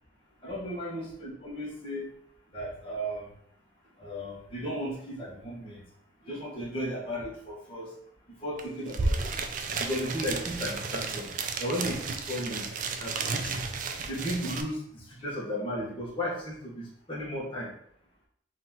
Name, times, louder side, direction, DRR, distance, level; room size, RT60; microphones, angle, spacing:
voice 1, 0.4-2.1 2.5-3.3 4.0-5.8 6.2-7.9 8.4-9.4 9.8-11.3 11.6-12.7 13.0-13.2 13.4-13.5 14.0-17.7, equal, 30° left, -5 dB, 1.2 m, -35 dB
sound 1, 8.6-8.7 8.9-14.6, right 4 dB, 45° right, 0.4 m, -32 dB
3.9 x 2.9 x 3.7 m, 0.67 s
head